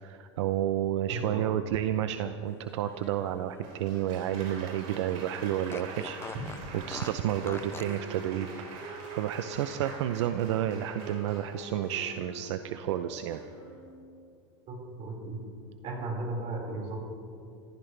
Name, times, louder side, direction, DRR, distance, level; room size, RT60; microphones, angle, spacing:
voice 1, 0.0-6.2 6.7-13.4, right 11 dB, 80° right, 9 dB, 0.7 m, -31 dB
voice 2, 1.1-1.5 14.7-15.4 15.8-17.0, right 2 dB, 45° right, -1 dB, 5.2 m, -35 dB
Fart, 2.7-4.7 5.0-5.1 5.7-8.0, left 5 dB, 15° left, 0.5 m, -45 dB
Applause, 3.6-12.5 13.3-13.7, right 4 dB, 60° right, 4.5 m, -46 dB
Wind instrument woodwind instrument, 6.2-14.2, right 1 dB, ahead, 4.3 m, -46 dB
27.0 x 14.5 x 3.4 m, 2.5 s
supercardioid pair, 125°, 15 cm